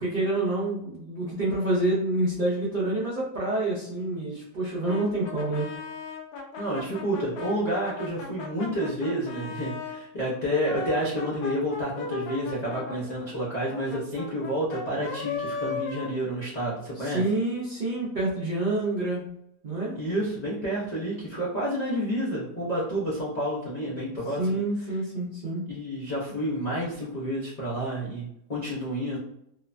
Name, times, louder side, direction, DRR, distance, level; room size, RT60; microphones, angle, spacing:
voice 1, 0.0-5.7 17.0-19.3 19.6-20.0 24.1-25.7, right 2 dB, 80° right, -6 dB, 0.4 m, -28 dB
Brass instrument, 4.8-10.0 10.5-16.8, left 5 dB, 70° left, 1.0 m, -37 dB
voice 2, 6.6-17.2 19.9-24.4 25.7-29.2, equal, 90° left, -7 dB, 0.3 m, -29 dB
3.0 x 2.1 x 2.4 m, 0.77 s
omnidirectional pair, 1.7 m